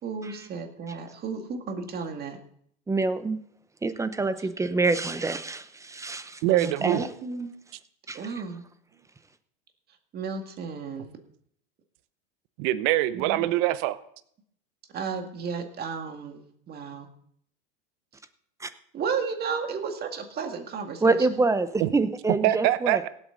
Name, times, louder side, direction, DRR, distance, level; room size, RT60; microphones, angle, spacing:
voice 1, 0.0-2.4 6.8-7.5 8.1-8.6 10.1-11.1 13.1-13.4 14.9-17.1 18.9-21.2, right 5 dB, 35° right, 5 dB, 2.1 m, -33 dB
voice 2, 2.9-3.4 3.8-7.0 8.1-8.2 18.6-18.7 21.0-23.0, right 3 dB, 10° right, 12 dB, 0.8 m, -26 dB
voice 3, 6.4-7.0 12.6-14.0 21.8-21.9 22.4-23.1, right 15 dB, 55° right, 14 dB, 0.8 m, -24 dB
17.5 x 8.3 x 3.9 m, 0.65 s
supercardioid pair, 115°, 29 cm